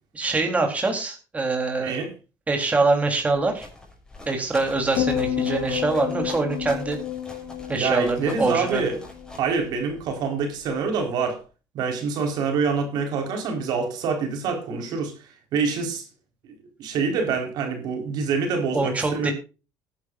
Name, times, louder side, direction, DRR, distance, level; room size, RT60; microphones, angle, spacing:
voice 1, 0.1-2.0 2.5-3.7 4.3-7.0 7.7-8.8 18.7-19.3, right 3 dB, 20° right, 3.6 m, -24 dB
voice 2, 1.8-2.1 7.7-9.0 9.4-11.4 11.7-15.1 15.5-16.0 16.8-19.3, right 5 dB, 70° right, 4.6 m, -26 dB
sound 1, 3.2-10.2, left 2 dB, 10° left, 6.4 m, -44 dB
sound 2, 5.0-9.3 9.6-10.1, left 11 dB, 65° left, 3.8 m, -30 dB
18.5 x 11.0 x 2.6 m
cardioid pair, 115°, 7 cm